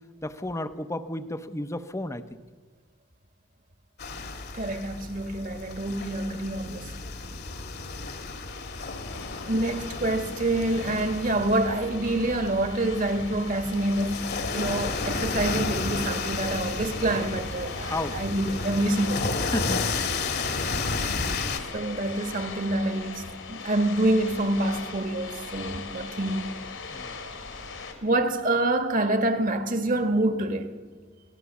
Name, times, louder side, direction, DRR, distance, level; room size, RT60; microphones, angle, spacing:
voice 1, 0.2-2.4 5.9-6.1 17.9-18.2 19.5-19.9 26.9-27.1, left 1 dB, 15° left, 0.8 m, -32 dB
sound 1, 4.0-21.6, left 3 dB, 55° left, 1.8 m, -32 dB
voice 2, 4.5-6.9 7.4-7.5 9.5-19.3 21.7-26.5 28.0-30.8, right 1 dB, 40° right, 1.5 m, -27 dB
sound 2, 8.5-27.9, left 4 dB, 80° left, 3.8 m, -41 dB
25.5 x 17.5 x 7.2 m
head